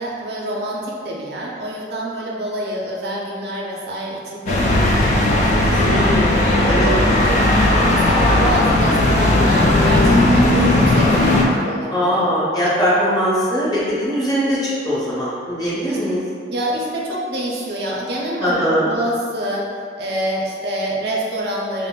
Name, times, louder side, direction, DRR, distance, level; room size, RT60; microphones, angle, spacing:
voice 1, 0.0-6.1 6.6-7.6 7.8-12.3 15.9-16.0 16.5-21.9, right 1 dB, 65° right, -3 dB, 0.5 m, -26 dB
sound 1, 4.5-11.4, left 1 dB, 40° left, 0.3 m, -16 dB
voice 2, 5.7-6.9 11.9-16.2 18.4-18.9, equal, 20° left, -9 dB, 0.8 m, -21 dB
2.5 x 2.0 x 3.7 m, 2.2 s
head